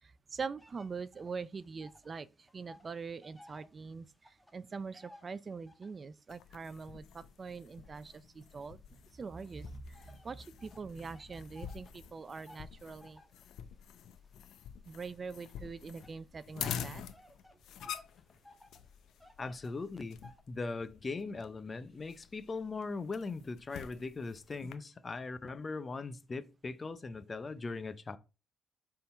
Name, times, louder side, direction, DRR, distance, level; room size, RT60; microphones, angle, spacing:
voice 1, 0.0-13.2 14.9-17.0 17.8-18.0, right 5 dB, 35° right, 0.4 m, -43 dB
sound 1, 0.6-2.2 2.4-6.1 6.7-8.7 9.4-20.4, left 1 dB, ahead, 1.2 m, -60 dB
sound 2, 6.3-24.7, left 9 dB, 80° left, 0.6 m, -47 dB
voice 2, 19.4-20.2 20.5-28.2, left 3 dB, 30° left, 0.6 m, -40 dB
6.9 x 3.8 x 4.3 m
cardioid pair, 90°, 0 cm